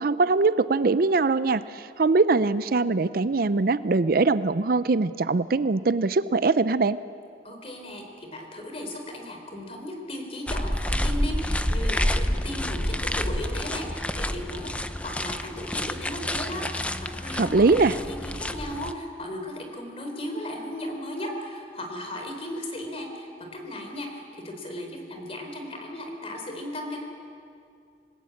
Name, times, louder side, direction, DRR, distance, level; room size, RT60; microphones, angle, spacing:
voice 1, 0.0-7.0 17.3-18.0, right 3 dB, 50° right, 15 dB, 0.5 m, -22 dB
voice 2, 7.4-27.0, left 1 dB, 35° left, 3 dB, 4.0 m, -36 dB
sound 1, 10.5-18.9, left 1 dB, 5° left, 0.7 m, -29 dB
28.0 x 20.0 x 8.6 m, 2.4 s
head